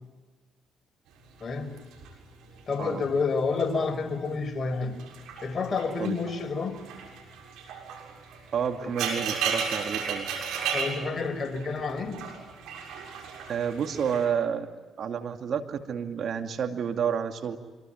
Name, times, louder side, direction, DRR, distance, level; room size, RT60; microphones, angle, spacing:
sound 1, 1.4-3.8 4.1-4.5 4.9-14.2, right 6 dB, 75° right, 6.7 m, -35 dB
voice 1, 2.7-5.0 5.4-6.8 8.8-8.9 10.7-12.3, left 4 dB, 40° left, 6 dB, 5.4 m, -29 dB
voice 2, 8.5-10.3 13.5-17.6, right 7 dB, 60° right, 6 dB, 2.4 m, -30 dB
26.0 x 23.0 x 9.3 m, 1.2 s
hypercardioid pair, 55°, 0 cm